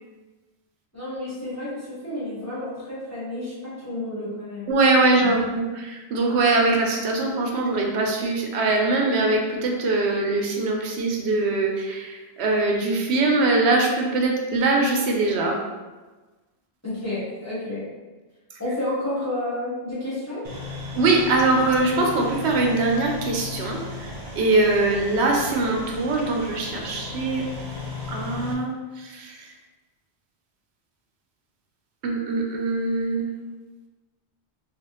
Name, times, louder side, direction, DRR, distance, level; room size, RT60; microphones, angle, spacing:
voice 1, 0.9-4.7 5.2-5.3 16.8-17.9 18.6-20.4, left 1 dB, 15° left, -10 dB, 1.1 m, -30 dB
voice 2, 4.7-15.6 21.0-27.4 28.1-29.5 32.0-33.3, right 2 dB, 90° right, 1 dB, 0.9 m, -22 dB
sound 1, 20.4-28.5, left 3 dB, 45° right, 0.8 m, -36 dB
3.3 x 2.4 x 3.0 m, 1.2 s
omnidirectional pair, 1.1 m